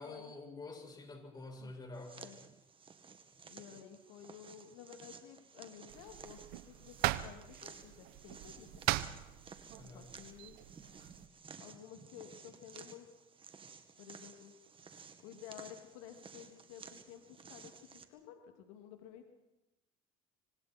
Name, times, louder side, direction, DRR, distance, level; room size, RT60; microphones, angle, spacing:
voice 1, 0.0-2.2 9.7-10.1, left 2 dB, 25° left, 3 dB, 6.3 m, -48 dB
sound 1, 1.9-18.0, right 5 dB, 35° right, 2.2 m, -55 dB
voice 2, 3.5-8.9 9.9-10.6 11.6-13.1 14.0-14.5 15.2-19.3, left 9 dB, 90° left, 4 dB, 2.8 m, -53 dB
sound 2, 5.9-11.3, right 16 dB, 75° right, 1.0 m, -40 dB
25.5 x 25.0 x 4.5 m, 0.95 s
supercardioid pair, 95°, 16 cm